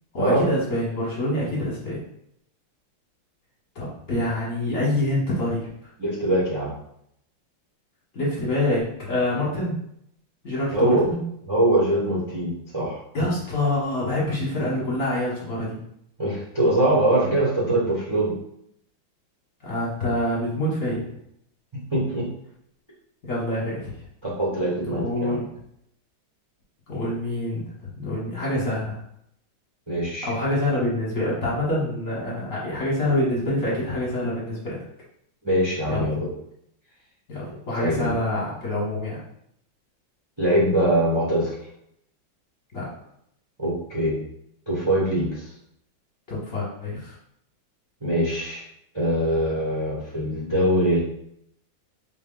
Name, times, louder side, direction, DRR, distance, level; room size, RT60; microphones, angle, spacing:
voice 1, 0.1-2.0 3.7-5.7 8.1-9.8 10.4-11.2 13.1-15.8 19.6-21.1 23.2-23.9 24.8-25.5 26.9-29.0 30.2-34.8 35.9-36.1 37.3-39.2 42.7-42.8 46.3-47.1, left 1 dB, 45° left, -6 dB, 1.3 m, -26 dB
voice 2, 6.0-6.7 10.7-11.0 11.5-13.0 16.2-18.3 21.9-22.3 24.2-25.4 29.9-30.3 35.4-36.3 37.8-38.1 40.4-41.5 43.6-44.2 44.7-45.5 48.0-48.6 48.9-51.0, right 1 dB, 30° right, -7 dB, 0.4 m, -23 dB
3.8 x 2.2 x 3.7 m, 0.73 s
omnidirectional pair, 2.2 m